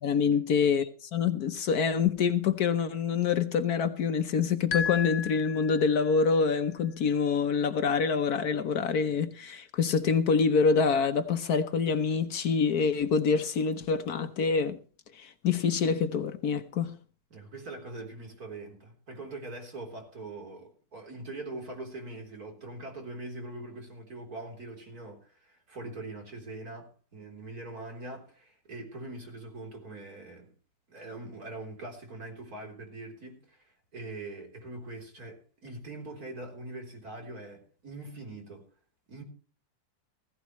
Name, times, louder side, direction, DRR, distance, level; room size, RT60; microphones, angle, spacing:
voice 1, 0.0-14.8 15.2-17.0, left 5 dB, 65° left, 1.4 m, -26 dB
sound 1, 4.7-6.3, left 6 dB, 85° left, 1.6 m, -34 dB
voice 2, 17.3-30.5 30.9-38.6 39.1-39.2, right 2 dB, 55° right, 4.3 m, -42 dB
16.0 x 15.5 x 3.1 m
omnidirectional pair, 1.9 m